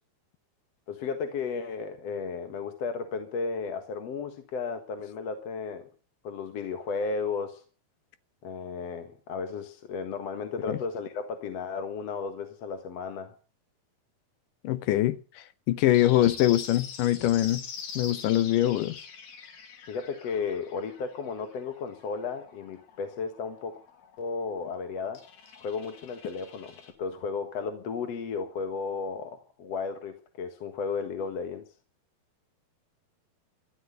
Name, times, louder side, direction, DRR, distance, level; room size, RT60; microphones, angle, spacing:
voice 1, 0.9-5.9 6.2-7.6 8.4-13.3 19.9-23.8 24.2-25.3 25.5-31.7, left 5 dB, 50° left, 2.2 m, -34 dB
voice 2, 14.6-15.2 15.7-17.6 18.0-19.0, left 14 dB, 70° left, 2.3 m, -23 dB
sound 1, 15.9-26.9, left 6 dB, 90° left, 4.5 m, -45 dB
13.0 x 13.0 x 6.7 m
omnidirectional pair, 4.3 m